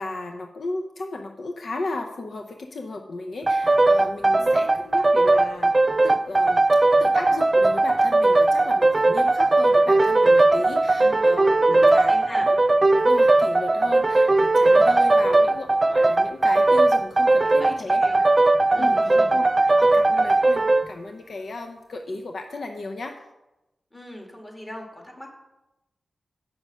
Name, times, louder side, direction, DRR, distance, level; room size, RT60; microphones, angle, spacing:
voice 1, 0.0-5.7 6.0-6.6 7.0-12.4 12.9-18.3 18.7-23.2, left 2 dB, 70° left, 4 dB, 0.7 m, -35 dB
sound 1, 3.5-20.9, right 2 dB, 35° right, 0.3 m, -18 dB
voice 2, 4.3-4.7 11.0-12.5 17.6-17.7 18.0-18.2 18.7-19.4 23.9-25.3, left 1 dB, 25° left, 1 dB, 2.3 m, -40 dB
7.8 x 6.0 x 5.4 m, 0.97 s
cardioid pair, 50°, 0 cm